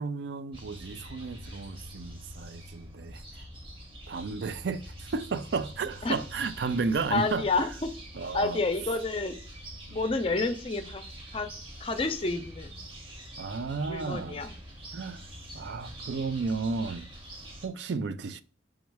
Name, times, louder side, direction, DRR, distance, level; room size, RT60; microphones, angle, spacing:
voice 1, 0.0-3.2 4.1-7.5 8.1-8.6 9.9-10.0 13.4-14.5 14.9-15.2 15.5-17.1 17.6-18.4, right 4 dB, 80° right, 0.4 m, -33 dB
sound 1, 0.5-17.7, equal, 30° right, 1.0 m, -45 dB
voice 2, 7.1-7.9 8.3-9.3 9.9-11.0 11.3-11.5 11.8-12.8 13.9-14.5, left 3 dB, 30° left, 0.5 m, -29 dB
3.7 x 3.1 x 4.6 m
head